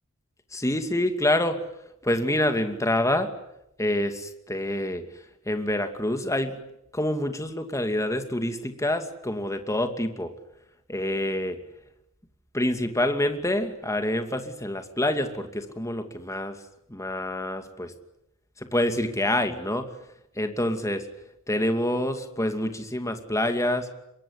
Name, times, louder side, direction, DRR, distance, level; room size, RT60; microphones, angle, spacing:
voice 1, 0.5-1.6 2.0-3.3 3.8-5.0 5.5-6.6 6.9-10.3 10.9-11.6 12.5-16.6 16.9-17.9 18.7-19.9 20.4-21.0 21.5-23.9, left 1 dB, 15° left, 7 dB, 2.5 m, -26 dB
26.5 x 23.5 x 9.6 m, 0.81 s
head